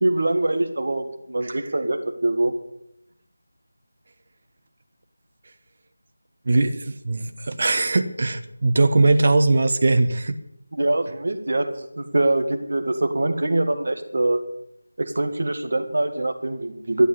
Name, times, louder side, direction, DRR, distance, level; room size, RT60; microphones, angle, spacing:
voice 1, 0.0-2.5 10.8-14.4 15.0-17.1, right 2 dB, 50° right, 8 dB, 1.9 m, -23 dB
voice 2, 6.4-10.4, right 2 dB, 35° right, 9 dB, 1.1 m, -20 dB
12.5 x 11.0 x 8.4 m, 0.76 s
figure-of-eight pair, 175°, 0 cm